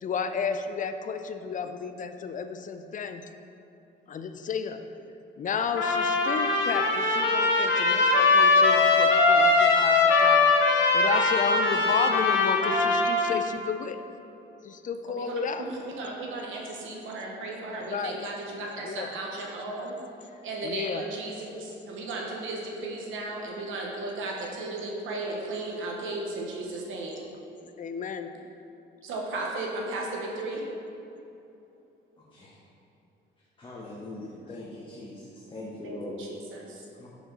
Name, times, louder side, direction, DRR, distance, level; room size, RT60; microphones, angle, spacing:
voice 1, 0.0-3.3 4.1-4.8 5.4-14.0 14.6-15.7 17.8-18.2 18.8-19.1 20.6-21.0 27.8-28.3, left 6 dB, 40° left, 8 dB, 0.4 m, -32 dB
Trumpet, 5.8-13.4, left 3 dB, 75° left, 0.9 m, -21 dB
voice 2, 15.1-19.9 20.4-27.2 29.0-30.6 35.8-36.8, right 2 dB, 85° right, -1 dB, 1.1 m, -35 dB
voice 3, 33.6-35.2 35.5-36.2 37.0-37.1, left 2 dB, 25° left, -6 dB, 1.0 m, -40 dB
5.9 x 5.0 x 3.9 m, 2.8 s
cardioid pair, 90°, 20 cm